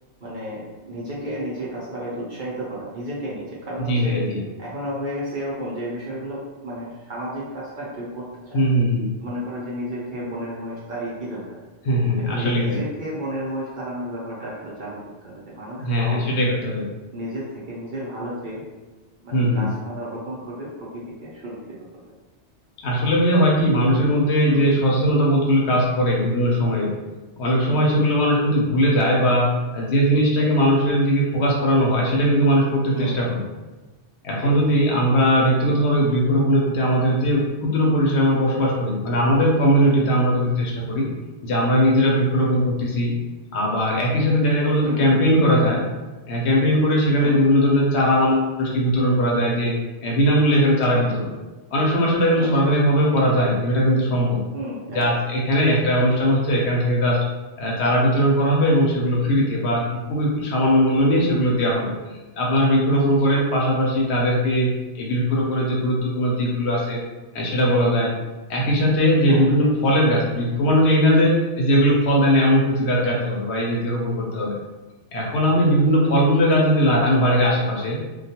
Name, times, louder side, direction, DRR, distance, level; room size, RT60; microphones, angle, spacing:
voice 1, 0.2-4.1 4.6-8.7 9.2-11.4 12.2-16.5 17.1-18.6 19.2-21.6 24.5-24.9 27.6-28.0 30.4-30.5 32.9-33.3 34.4-34.5 39.8-40.1 44.8-45.2 47.2-47.4 52.4-52.5 54.5-55.2 62.9-63.0 67.7-68.2 69.3-69.5 76.0-76.1, equal, 55° right, -6 dB, 0.7 m, -32 dB
voice 2, 3.8-4.4 8.5-9.1 11.8-12.8 15.8-16.8 19.3-19.6 22.8-26.9 27.4-33.4 34.2-41.1 41.4-43.1 43.5-45.8 46.3-49.7 50.0-51.3 51.7-54.4 54.9-57.2 57.6-61.9 62.4-67.0 67.3-68.1 68.5-74.5 75.1-78.0, equal, 70° left, -2 dB, 0.9 m, -19 dB
2.3 x 2.2 x 2.7 m, 1.2 s
omnidirectional pair, 1.2 m